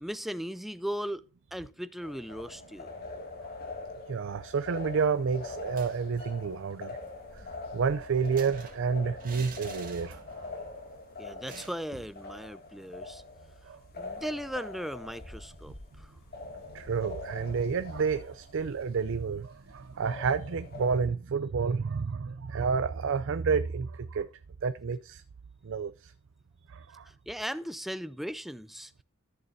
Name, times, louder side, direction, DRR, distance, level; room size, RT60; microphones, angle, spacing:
voice 1, 0.0-3.0 11.2-13.2 13.9-16.1 27.0-29.0, equal, ahead, 0.4 m, -38 dB
sound 1, 2.0-21.0, left 3 dB, 45° left, 2.4 m, -44 dB
voice 2, 4.1-7.0 7.7-10.5 13.7-13.8 16.7-24.3 24.6-25.2 25.6-26.1 26.7-27.0, right 5 dB, 60° right, 0.5 m, -30 dB
sound 2, 5.6-6.4 6.7-6.8 7.1-10.5 10.8-11.0 11.5-12.2, right 5 dB, 40° right, 2.2 m, -49 dB
14.0 x 6.6 x 2.7 m
head